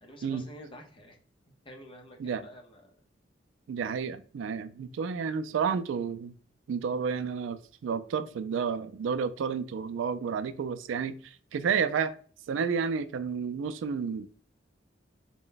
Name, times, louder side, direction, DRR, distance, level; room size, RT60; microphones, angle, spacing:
voice 1, 0.0-1.2 1.6-2.8, equal, 30° left, 0.8 m, -48 dB
voice 2, 3.7-6.3 6.7-12.1 12.5-14.3, right 6 dB, 85° right, 0.3 m, -31 dB
3.9 x 2.2 x 3.9 m
head